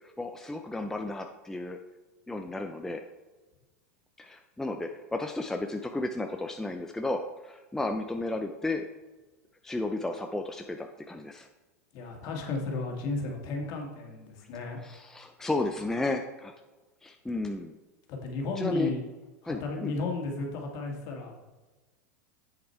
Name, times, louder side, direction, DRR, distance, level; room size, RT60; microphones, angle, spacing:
voice 1, 0.0-1.8 2.3-3.0 4.2-8.9 9.6-11.5 14.8-16.5 17.0-17.8 18.6-18.9 19.4-19.9, left 2 dB, 5° left, 4 dB, 0.5 m, -33 dB
voice 2, 11.9-14.8 18.1-19.0 19.4-21.4, left 3 dB, 50° left, 1 dB, 2.1 m, -34 dB
8.0 x 6.6 x 4.5 m, 1.2 s
hypercardioid pair, 100°, 8 cm